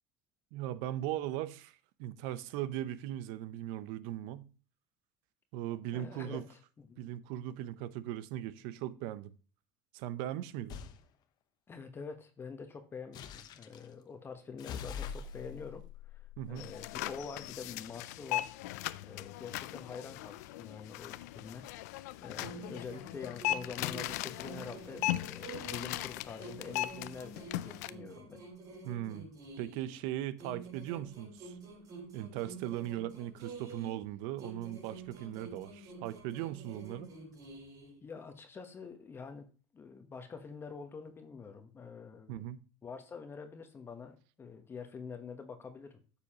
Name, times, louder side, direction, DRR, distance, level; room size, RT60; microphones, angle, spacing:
voice 1, 0.5-4.5 5.5-6.4 7.0-9.3 9.9-10.8 16.4-16.7 28.8-29.3 29.6-31.5 32.1-37.1 42.3-42.6, right 13 dB, 70° right, 0.6 m, -39 dB
voice 2, 5.9-6.6 6.9-7.0 11.7-18.5 19.0-21.7 22.2-28.4 38.0-39.5 39.7-42.4 42.8-46.0, left 5 dB, 25° left, 1.0 m, -46 dB
sound 1, 10.7-11.0 13.1-13.9 14.6-17.2, left 7 dB, 50° left, 0.9 m, -44 dB
sound 2, 16.6-27.9, left 15 dB, 85° left, 0.4 m, -39 dB
sound 3, 22.4-26.1 26.4-30.0 30.4-34.1 34.4-38.0, right 3 dB, 45° right, 4.8 m, -49 dB
9.6 x 6.9 x 2.9 m
supercardioid pair, 105°, 9 cm